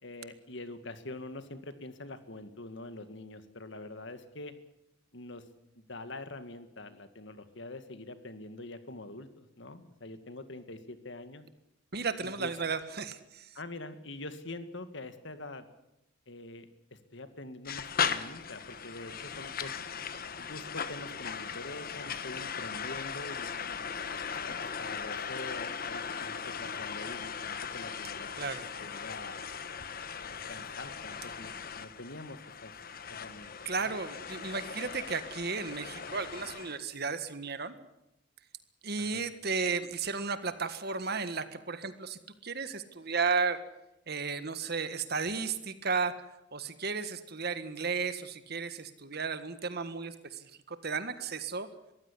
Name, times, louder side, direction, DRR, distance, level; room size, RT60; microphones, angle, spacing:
voice 1, 0.0-4.5 5.1-5.4 5.9-11.4 12.2-12.5 13.5-15.6 16.3-19.9 20.4-24.0 24.8-28.5 28.8-29.5 30.2-32.7 33.2-33.5 33.8-33.9 39.0-39.3, left 2 dB, 60° left, 10 dB, 2.0 m, -45 dB
voice 2, 11.9-13.5 28.4-28.6 33.6-37.8 38.8-43.6 44.1-46.3 46.5-51.7, right 5 dB, 50° right, 11 dB, 1.7 m, -34 dB
sound 1, 17.7-36.8, left 6 dB, 45° left, 1.2 m, -38 dB
22.5 x 15.5 x 9.9 m, 0.88 s
head